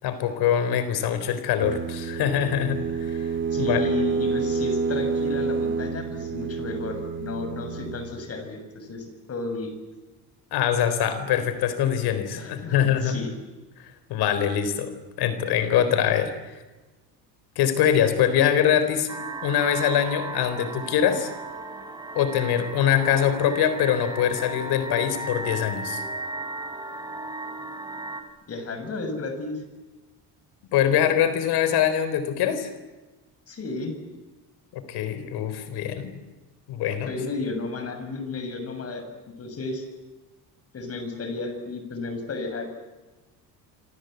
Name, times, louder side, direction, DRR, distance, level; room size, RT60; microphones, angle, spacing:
voice 1, 0.0-3.8 10.5-13.2 14.1-14.9 15.2-16.6 17.6-19.1 19.4-21.3 22.2-26.0 30.7-32.7 34.7-36.1 36.7-37.1, left 9 dB, 75° left, 11 dB, 3.8 m, -23 dB
sound 1, 1.6-8.1, right 5 dB, 30° right, 2.6 m, -28 dB
voice 2, 3.5-9.7 12.3-13.3 28.5-29.6 33.5-33.9 37.0-39.1 39.4-39.8 40.7-42.7, left 3 dB, 40° left, 8 dB, 6.8 m, -33 dB
sound 2, 19.1-28.2, right 2 dB, 10° right, 5.1 m, -35 dB
28.0 x 26.5 x 8.0 m, 1.2 s
cardioid pair, 130°, 38 cm